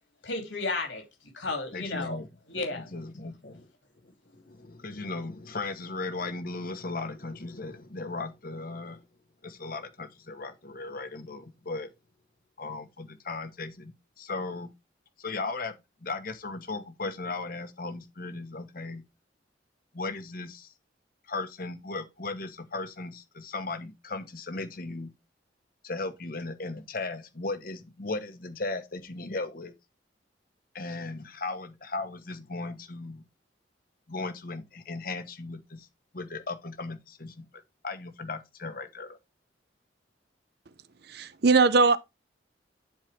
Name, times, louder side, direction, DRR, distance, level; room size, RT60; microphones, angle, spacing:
voice 1, 0.2-1.0 1.3-2.2 2.5-2.9, left 3 dB, 80° left, 3.0 m, -32 dB
voice 2, 1.7-2.3 2.5-3.7 4.0-9.0 9.4-11.9 12.6-14.7 15.2-15.7 16.0-19.0 19.9-20.7 21.3-25.1 25.8-29.7 30.7-33.2 34.1-35.9 36.1-37.5 37.8-39.2, left 3 dB, 50° left, 1.2 m, -37 dB
voice 3, 41.1-42.0, right 4 dB, 55° right, 0.6 m, -20 dB
10.5 x 4.7 x 3.4 m
head